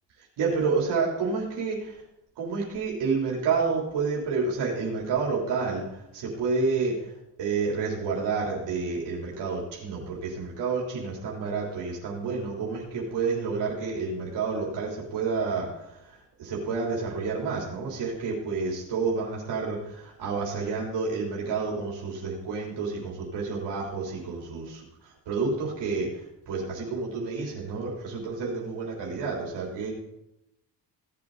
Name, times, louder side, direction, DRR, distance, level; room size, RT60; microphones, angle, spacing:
voice 1, 0.4-1.9 2.4-5.8 6.1-6.9 7.4-15.7 16.4-24.8 25.3-26.1 26.5-29.9, right 4 dB, 75° right, -3 dB, 3.6 m, -29 dB
17.0 x 7.9 x 4.0 m, 0.89 s
cardioid pair, 120°, 42 cm